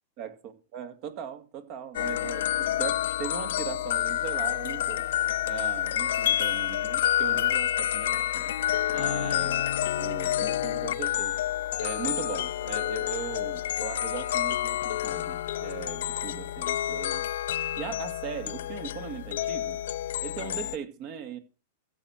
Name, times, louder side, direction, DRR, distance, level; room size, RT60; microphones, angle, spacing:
voice 1, 0.2-5.0 5.5-8.5 8.9-9.6 9.9-11.4 11.8-17.2 17.8-19.8 20.2-21.4, right 8 dB, 50° right, 2.4 m, -39 dB
sound 1, 1.9-20.8, left 12 dB, 70° left, 0.5 m, -29 dB
15.0 x 6.0 x 6.6 m
hypercardioid pair, 105°, 0 cm